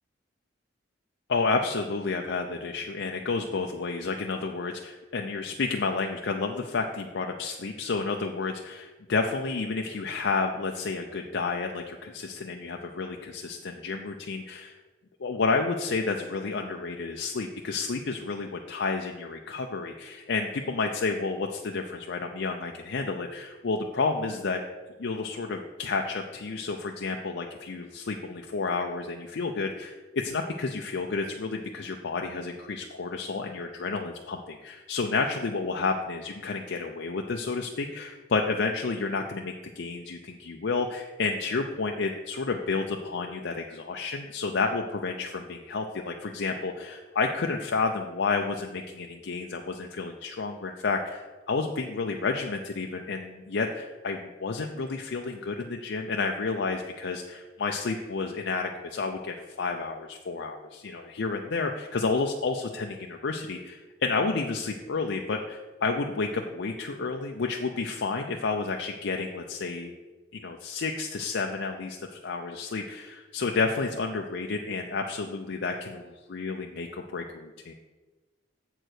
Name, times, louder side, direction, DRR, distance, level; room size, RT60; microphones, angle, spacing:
voice 1, 1.3-14.7 15.2-24.6 25.0-69.9 70.3-77.7, left 4 dB, 75° left, 2 dB, 0.5 m, -30 dB
7.8 x 4.6 x 6.4 m, 1.3 s
head